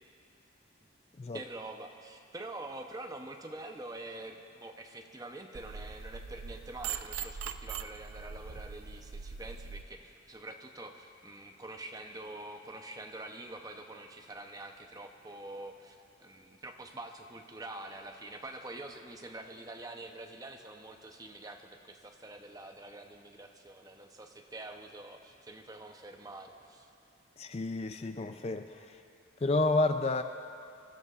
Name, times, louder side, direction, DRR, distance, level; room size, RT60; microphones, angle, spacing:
voice 1, 1.3-26.9, right 2 dB, 20° right, 4 dB, 0.7 m, -46 dB
sound 1, 5.5-9.8, right 7 dB, 85° right, 0.5 m, -41 dB
voice 2, 27.4-29.0 29.4-30.2, left 2 dB, 30° left, 7 dB, 0.4 m, -30 dB
27.0 x 13.5 x 2.5 m, 2.7 s
head